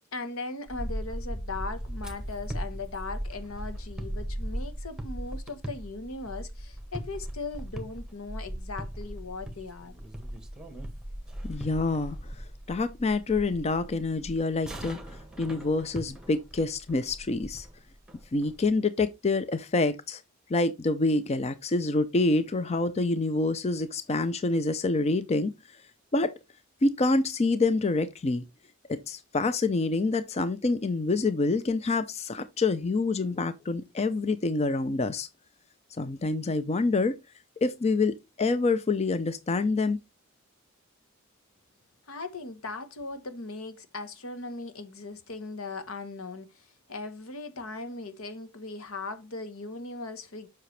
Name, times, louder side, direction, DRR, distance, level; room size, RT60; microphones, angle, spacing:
voice 1, 0.1-9.9 42.1-50.5, left 3 dB, 80° left, 1.2 m, -38 dB
sound 1, 0.7-18.7, equal, 5° right, 1.5 m, -38 dB
voice 2, 11.4-12.2 12.7-15.0 15.4-17.7 18.3-20.2 20.5-25.5 26.1-26.3 26.8-28.4 28.9-35.3 36.0-37.2 37.6-40.0, left 3 dB, 30° left, 0.5 m, -27 dB
7.6 x 5.8 x 3.2 m
head